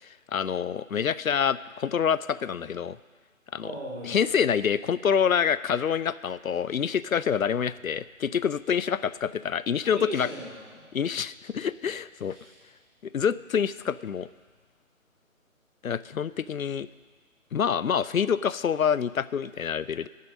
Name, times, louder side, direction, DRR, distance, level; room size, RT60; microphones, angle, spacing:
voice 1, 0.3-3.0 3.5-3.7 4.1-10.3 10.9-12.4 13.1-14.3 15.8-16.9 17.5-20.1, left 7 dB, 80° left, 17 dB, 0.6 m, -26 dB
voice 2, 3.6-4.3 9.8-10.9 12.3-12.6, right 1 dB, 45° right, -10 dB, 3.9 m, -39 dB
15.5 x 6.8 x 6.3 m, 1.4 s
figure-of-eight pair, 160°, 41 cm